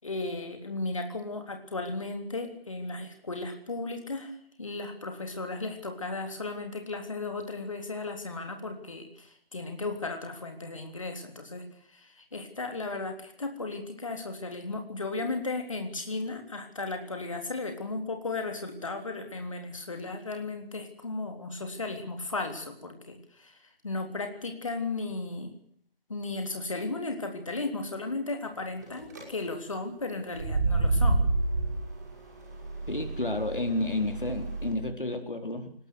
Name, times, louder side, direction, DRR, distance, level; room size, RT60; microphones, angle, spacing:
voice 1, 0.0-25.5 26.1-31.2, left 3 dB, 35° left, 5 dB, 3.5 m, -35 dB
sound 1, 28.8-29.2 30.3-34.7, right 2 dB, 20° right, 5.7 m, -29 dB
voice 2, 32.9-35.7, left 2 dB, 60° left, 6 dB, 4.4 m, -31 dB
23.0 x 20.0 x 8.1 m, 0.63 s
figure-of-eight pair, 165°, 29 cm